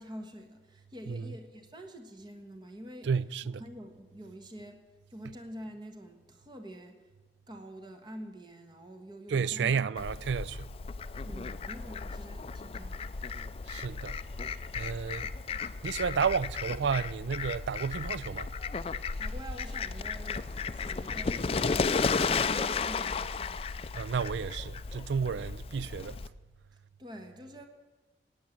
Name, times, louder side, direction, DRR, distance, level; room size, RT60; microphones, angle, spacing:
voice 1, 0.0-3.1 3.6-4.8 5.1-7.1 7.5-9.8 11.2-13.2 19.2-20.4 20.7-23.9 26.7-27.7, equal, 25° right, 1.3 m, -47 dB
voice 2, 3.0-3.6 9.3-10.7 13.7-14.2 14.8-15.3 15.8-18.5 23.9-26.2, right 6 dB, 90° right, 0.4 m, -31 dB
Fowl, 10.0-26.3, left 5 dB, 35° left, 0.4 m, -34 dB
16.5 x 9.5 x 7.4 m
head